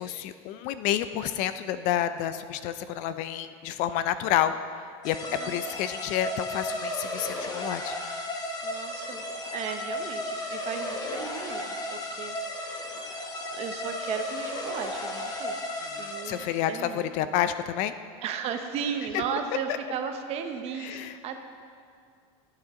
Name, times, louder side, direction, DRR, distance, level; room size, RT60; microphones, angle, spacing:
voice 1, 0.0-4.5 5.0-5.2 5.5-7.9 15.9-17.9 20.8-21.4, left 11 dB, 60° left, 11 dB, 0.6 m, -29 dB
sound 1, 5.0-16.7, left 1 dB, 25° left, 1.5 m, -34 dB
voice 2, 5.3-5.6 8.6-9.2 9.5-13.0 13.5-15.5 16.0-17.1 18.2-21.4, right 7 dB, 45° right, 6 dB, 1.1 m, -35 dB
17.5 x 8.8 x 3.8 m, 2.3 s
supercardioid pair, 130°, 15 cm